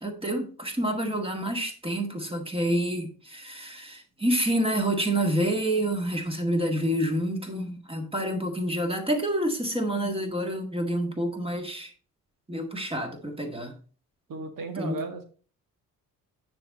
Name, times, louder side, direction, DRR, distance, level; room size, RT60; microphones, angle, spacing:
voice 1, 0.0-11.9 12.5-13.7 14.8-15.0, right 1 dB, 10° right, 4 dB, 1.7 m, -28 dB
voice 2, 14.3-15.2, right 4 dB, 45° right, 6 dB, 1.7 m, -35 dB
9.5 x 4.5 x 4.1 m, 0.39 s
figure-of-eight pair, 45°, 46 cm